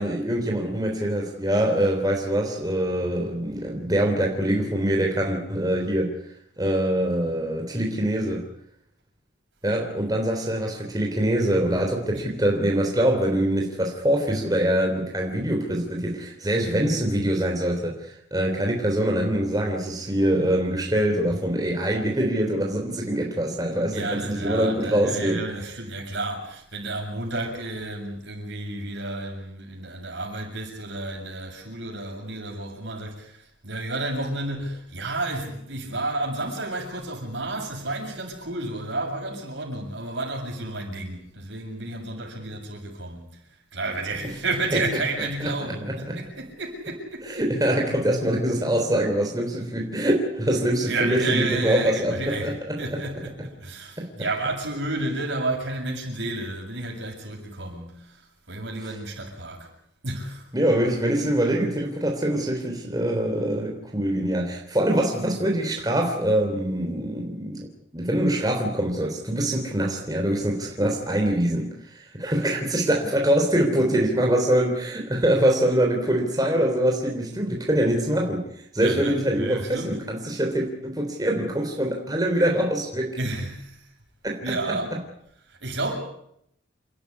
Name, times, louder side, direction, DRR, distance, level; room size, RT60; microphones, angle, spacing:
voice 1, 0.0-6.1 6.6-8.4 9.6-25.4 44.7-45.0 45.4-46.2 47.2-53.0 54.0-54.1 60.5-67.7 67.9-78.4 78.7-83.2 84.2-84.4 84.7-84.8, right 1 dB, 20° right, 3.4 m, -24 dB
voice 2, 23.9-43.4 43.7-47.7 50.9-59.7 60.0-60.5 78.8-80.0 83.2-83.9 84.4-85.0 85.5-86.0, right 2 dB, 75° right, 7.2 m, -31 dB
29.5 x 12.5 x 9.7 m
head